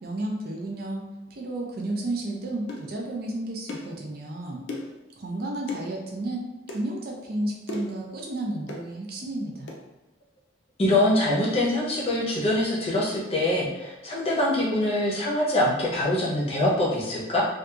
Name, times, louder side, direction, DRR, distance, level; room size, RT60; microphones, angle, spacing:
voice 1, 0.0-4.6 5.2-6.4 6.7-9.7, right 1 dB, 55° right, 0 dB, 0.4 m, -32 dB
sound 1, 2.7-2.9 3.7-3.9 4.7-5.0 5.7-5.9 6.7-6.8 7.7-8.0 8.7-8.9 9.7-9.8, left 2 dB, 75° left, 0.4 m, -36 dB
voice 2, 10.8-17.4, left 1 dB, 30° left, -5 dB, 0.7 m, -24 dB
2.7 x 2.4 x 2.3 m, 1.0 s
head